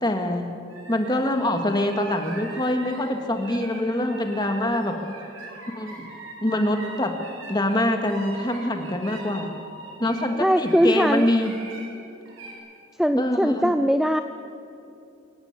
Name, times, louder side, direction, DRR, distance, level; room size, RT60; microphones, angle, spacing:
voice 1, 0.0-0.5 0.9-5.1 5.8-6.1 6.4-7.1 7.5-9.5 10.0-11.5 13.2-13.7, left 1 dB, 20° left, 5 dB, 1.9 m, -24 dB
sound 1, 0.7-10.3 10.6-11.8 12.3-12.5, right 2 dB, 85° right, 6.3 m, -42 dB
voice 2, 10.4-11.3 13.0-14.2, equal, ahead, 9 dB, 0.4 m, -20 dB
26.5 x 15.5 x 8.3 m, 2.7 s
head